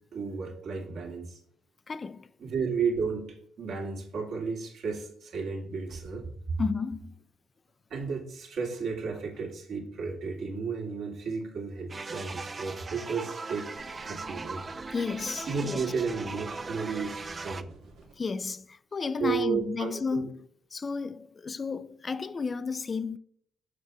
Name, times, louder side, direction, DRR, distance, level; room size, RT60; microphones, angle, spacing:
voice 1, 0.1-1.4 2.4-6.6 7.9-13.7 13.9-14.6 15.5-17.7 19.2-20.3, right 5 dB, 65° right, 2.1 m, -33 dB
voice 2, 1.9-2.3 6.6-7.1 14.9-15.8 18.2-20.5 20.7-23.2, left 5 dB, 35° left, 0.4 m, -32 dB
sound 1, 11.9-17.6, right 3 dB, 30° right, 0.5 m, -39 dB
sound 2, 13.7-18.1, right 3 dB, 90° right, 1.7 m, -54 dB
6.6 x 6.0 x 3.4 m
cardioid pair, 90°, 0 cm